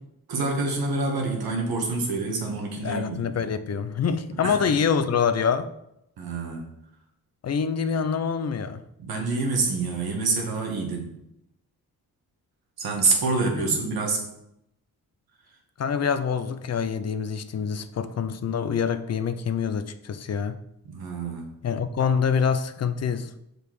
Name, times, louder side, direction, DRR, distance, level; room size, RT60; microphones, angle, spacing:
voice 1, 0.3-3.5 4.4-4.7 6.2-6.7 9.0-11.2 12.8-14.3 20.9-21.5, right 3 dB, 75° right, 1 dB, 1.9 m, -27 dB
voice 2, 2.8-5.7 7.4-8.8 13.5-13.7 15.8-20.6 21.6-23.3, left 6 dB, 45° left, 11 dB, 0.6 m, -26 dB
6.9 x 5.1 x 4.7 m, 0.80 s
cardioid pair, 125°, 36 cm